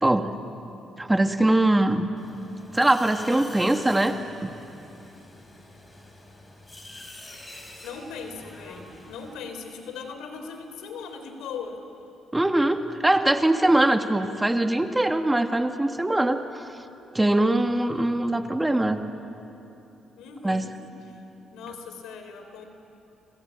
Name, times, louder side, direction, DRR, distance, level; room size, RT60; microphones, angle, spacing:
voice 1, 0.0-0.3 1.0-2.1 2.7-4.2 4.4-4.5 12.3-16.6 17.2-19.0 20.4-20.6, right 1 dB, 10° right, 6 dB, 1.6 m, -22 dB
sound 1, 2.2-9.4, left 1 dB, 20° left, 5.8 m, -46 dB
voice 2, 7.8-11.8 20.2-20.8 21.1-21.2 21.5-22.6, left 5 dB, 90° left, 6 dB, 3.4 m, -39 dB
29.5 x 21.0 x 8.8 m, 2.9 s
cardioid pair, 90°, 0 cm